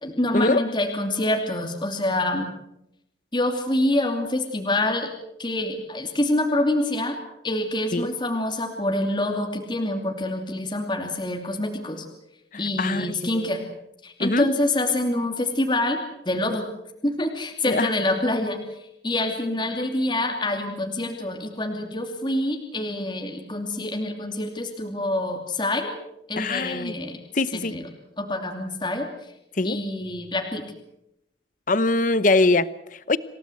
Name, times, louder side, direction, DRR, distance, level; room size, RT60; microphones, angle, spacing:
voice 1, 0.0-2.5 3.3-5.1 5.4-7.2 7.4-12.0 12.6-13.6 14.0-16.0 16.3-16.6 17.0-18.6 19.0-25.9 26.3-27.2 27.5-27.9 28.2-29.1 29.6-30.6, left 1 dB, 25° left, 3 dB, 2.7 m, -26 dB
voice 2, 12.5-13.5 14.2-14.5 17.7-17.9 26.4-27.0 27.3-27.8 29.5-29.8 31.7-33.2, left 2 dB, 45° left, 16 dB, 0.9 m, -23 dB
27.5 x 17.5 x 8.0 m, 0.83 s
head